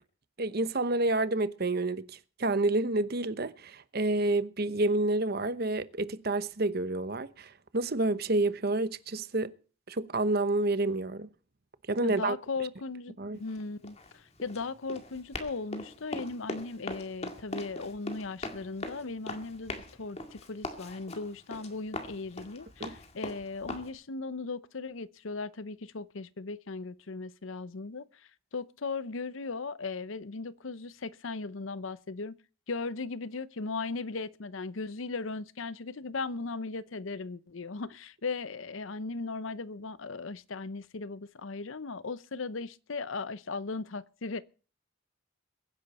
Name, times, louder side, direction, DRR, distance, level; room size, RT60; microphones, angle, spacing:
voice 1, 0.4-9.5 9.9-11.3 11.9-12.4 13.2-13.4 22.8-22.9, right 2 dB, 50° right, 0.9 m, -29 dB
voice 2, 12.0-32.3 32.7-44.4, left 3 dB, 70° left, 0.7 m, -37 dB
Run, 13.4-23.9, left 2 dB, 30° left, 2.1 m, -41 dB
22.5 x 10.5 x 4.2 m
head